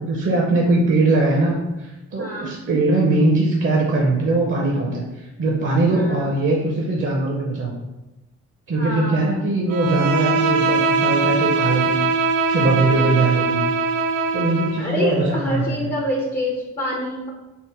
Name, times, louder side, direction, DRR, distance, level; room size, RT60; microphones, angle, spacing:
voice 1, 0.0-7.7 8.7-12.1 12.4-13.6 14.3-15.9, right 2 dB, 40° right, -2 dB, 0.7 m, -21 dB
voice 2, 2.2-2.5 5.9-6.3 8.8-9.2 12.8-13.2 14.8-17.3, left 1 dB, 30° left, -2 dB, 0.7 m, -27 dB
Bowed string instrument, 9.7-14.9, right 4 dB, 80° right, 0.5 m, -21 dB
3.6 x 2.0 x 4.3 m, 1.0 s
cardioid pair, 90°, 30 cm